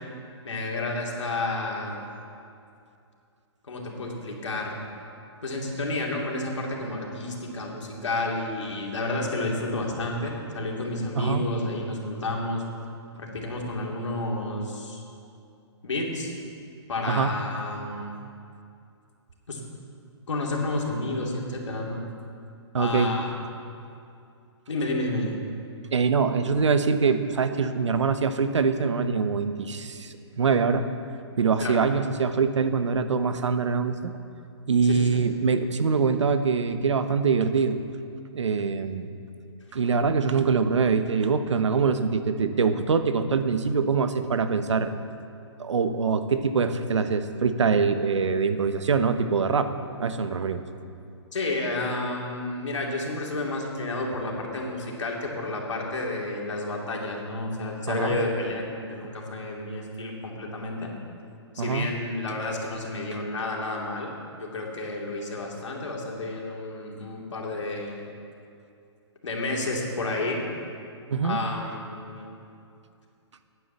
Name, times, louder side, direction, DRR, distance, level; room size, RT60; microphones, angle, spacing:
voice 1, 0.4-2.1 3.6-4.8 5.4-12.6 13.2-15.0 15.8-16.3 16.9-18.1 19.5-19.6 20.3-22.0 22.7-23.3 24.7-25.3 31.6-31.8 34.8-35.2 51.3-60.9 61.5-64.1 64.4-68.1 69.2-70.4 71.2-72.3, left 2 dB, 85° left, -1 dB, 2.7 m, -30 dB
voice 2, 22.7-23.1 25.9-30.9 31.4-34.1 34.7-37.8 38.3-39.1 39.7-44.9 45.6-49.7 50.0-50.6 57.9-58.2 61.6-61.9 71.1-71.4, right 5 dB, 85° right, 10 dB, 1.0 m, -24 dB
10.0 x 9.4 x 7.3 m, 2.5 s
hypercardioid pair, 145°, 15 cm